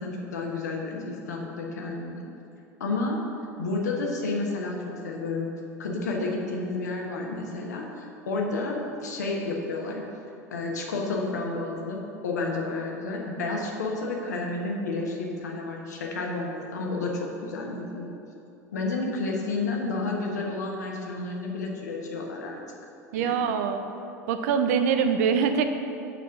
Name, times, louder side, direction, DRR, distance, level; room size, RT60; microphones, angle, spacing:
voice 1, 0.0-2.2 2.8-3.2 3.6-5.5 5.8-10.1 10.5-18.1 18.7-22.6 23.1-23.4, left 3 dB, 75° left, 0 dB, 1.1 m, -31 dB
voice 2, 23.1-23.8 24.3-25.6, right 6 dB, 60° right, 8 dB, 0.6 m, -23 dB
7.0 x 4.8 x 5.7 m, 2.7 s
figure-of-eight pair, 75°, 9 cm